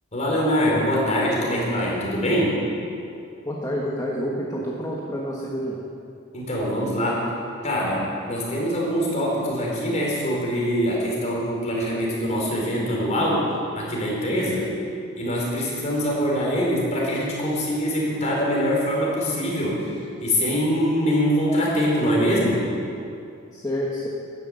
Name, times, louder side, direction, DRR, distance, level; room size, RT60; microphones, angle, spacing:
voice 1, 0.1-2.6 6.3-7.3 7.6-13.5 13.8-14.7 15.2-19.9 20.2-22.6, equal, 35° left, -4 dB, 4.5 m, -23 dB
voice 2, 3.4-5.8 23.5-24.1, equal, 15° left, -4 dB, 1.5 m, -28 dB
13.5 x 11.0 x 8.0 m, 2.5 s
head